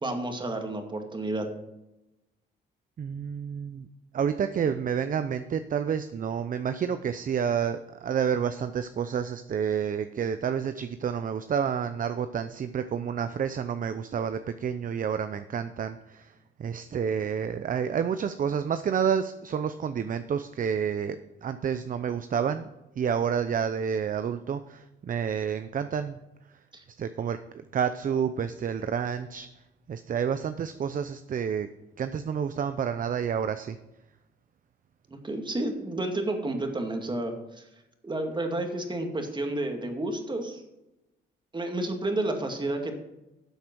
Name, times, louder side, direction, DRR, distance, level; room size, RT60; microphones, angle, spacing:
voice 1, 0.0-1.5 26.7-26.8 35.1-37.7 38.0-40.6 41.5-42.9, right 2 dB, 25° right, 4 dB, 2.2 m, -31 dB
voice 2, 3.0-3.9 4.1-16.3 16.6-22.7 23.0-26.2 27.0-27.4 27.7-29.5 29.9-31.7 32.0-33.8, right 7 dB, 45° right, 10 dB, 0.6 m, -29 dB
12.5 x 7.3 x 4.6 m, 0.95 s
cardioid pair, 90°, 20 cm